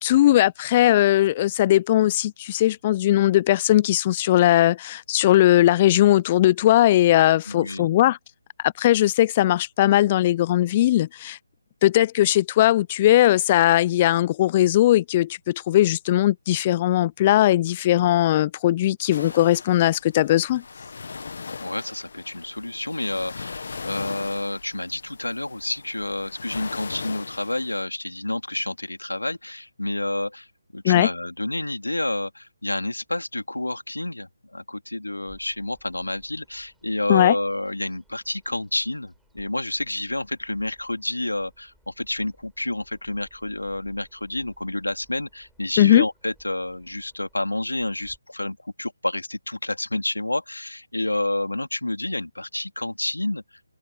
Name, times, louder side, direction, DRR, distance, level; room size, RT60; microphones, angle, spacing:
voice 1, 0.0-8.2 8.6-11.4 11.8-20.6 30.8-31.1 37.1-37.3 45.8-46.1, left 14 dB, 25° left, 0.5 m, -19 dB
voice 2, 7.5-7.9 21.6-30.5 30.7-53.4, left 1 dB, 90° left, 2.9 m, -29 dB
sound 1, 19.1-27.8, left 4 dB, 60° left, 1.3 m, -39 dB
Bird vocalization bird call bird song, 35.3-48.2, right 1 dB, ahead, 7.0 m, -61 dB
open air
figure-of-eight pair, 150°, 0 cm